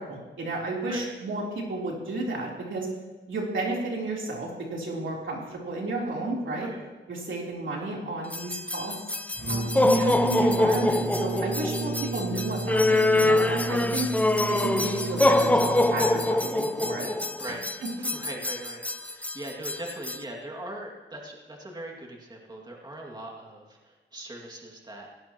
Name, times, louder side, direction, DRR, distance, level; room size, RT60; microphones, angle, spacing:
voice 1, 0.0-2.9 3.3-6.7 7.1-9.0 9.5-14.1 14.5-17.1 17.8-18.1, right 2 dB, 85° right, -3 dB, 3.5 m, -32 dB
sound 1, 8.3-20.2, left 2 dB, 5° left, 0.6 m, -25 dB
Brass instrument, 9.4-16.5, right 3 dB, 55° right, 2.3 m, -33 dB
voice 2, 18.0-25.1, right 1 dB, 20° right, -1 dB, 2.2 m, -40 dB
17.5 x 17.0 x 3.0 m, 1.2 s
wide cardioid pair, 120°, 19 cm